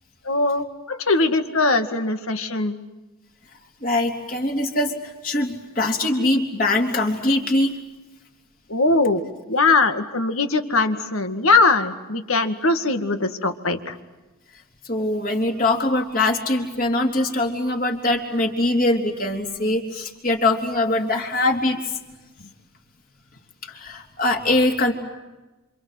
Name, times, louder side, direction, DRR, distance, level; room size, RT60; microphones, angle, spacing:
voice 1, 0.3-2.8 8.7-9.2 9.5-14.0, left 3 dB, 65° left, 8 dB, 2.1 m, -21 dB
voice 2, 3.8-7.8 14.9-21.8 23.7-24.9, left 2 dB, 40° left, 2 dB, 3.8 m, -22 dB
28.0 x 27.0 x 7.9 m, 1.1 s
head